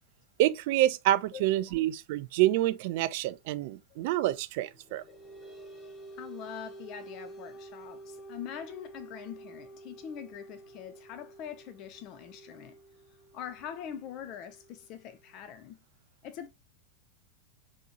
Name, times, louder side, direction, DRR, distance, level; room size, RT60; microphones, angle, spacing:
voice 1, 0.4-5.0, right 15 dB, 50° right, 0.4 m, -27 dB
voice 2, 1.3-1.8 3.9-4.0 5.1-5.5 6.2-12.8 13.3-15.8 16.2-16.5, left 9 dB, 40° left, 0.4 m, -43 dB
sound 1, 4.7-15.6, right 2 dB, 25° left, 2.0 m, -50 dB
5.2 x 2.9 x 2.8 m
figure-of-eight pair, 90°, 0 cm